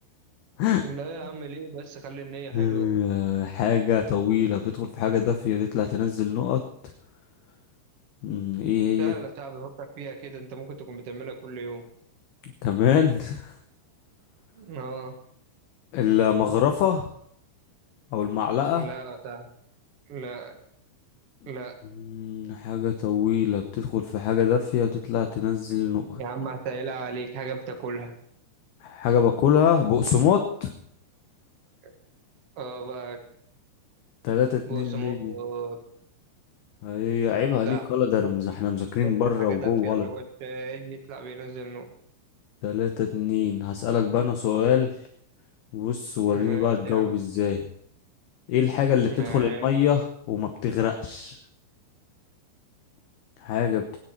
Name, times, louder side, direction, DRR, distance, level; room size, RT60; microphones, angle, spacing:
voice 1, 0.8-2.9 9.0-11.9 14.5-15.2 18.7-19.5 20.1-20.5 21.4-21.8 26.1-28.2 31.8-31.9 32.5-33.3 34.7-35.8 37.6-37.8 38.2-38.3 39.4-41.9 46.3-47.1 49.0-49.7, right 4 dB, 55° right, 4 dB, 1.6 m, -36 dB
voice 2, 2.5-6.6 8.2-9.1 12.6-13.5 15.9-17.1 18.1-18.9 22.0-26.2 28.8-30.7 34.2-35.3 36.8-40.1 42.6-45.0 45.7-47.6 48.5-51.4 53.4-53.8, left 9 dB, 70° left, 5 dB, 2.6 m, -24 dB
24.5 x 9.8 x 4.5 m, 0.66 s
omnidirectional pair, 5.5 m